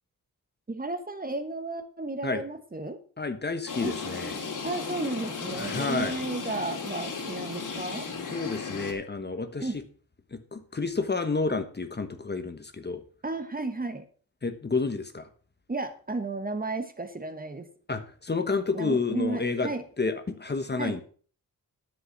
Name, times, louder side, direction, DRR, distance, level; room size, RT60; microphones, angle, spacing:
voice 1, 0.7-3.0 3.8-3.9 4.6-8.1 9.6-9.8 13.2-14.1 15.7-17.7 18.7-19.8 20.8-21.0, right 2 dB, 25° right, 9 dB, 1.3 m, -33 dB
voice 2, 3.2-4.4 5.6-6.2 8.3-9.7 10.3-13.0 14.4-15.3 17.9-19.7 20.0-21.0, left 4 dB, 30° left, 9 dB, 1.2 m, -30 dB
sound 1, 3.7-8.9, left 5 dB, 65° left, 2.5 m, -35 dB
10.0 x 7.7 x 5.9 m, 0.43 s
wide cardioid pair, 105°, 35 cm